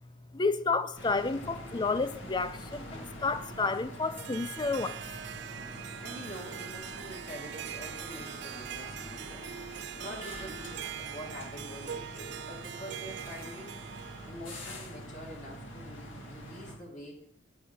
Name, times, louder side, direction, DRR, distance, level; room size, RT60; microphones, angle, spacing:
voice 1, 0.3-5.0, left 3 dB, 25° left, 0.5 m, -30 dB
sound 1, 1.0-16.8, equal, 75° left, 2.1 m, -45 dB
Harp, 3.9-14.4, right 10 dB, 60° right, 0.4 m, -42 dB
voice 2, 6.0-13.8 14.2-17.2, equal, 40° left, 2.1 m, -46 dB
8.5 x 6.9 x 5.4 m
head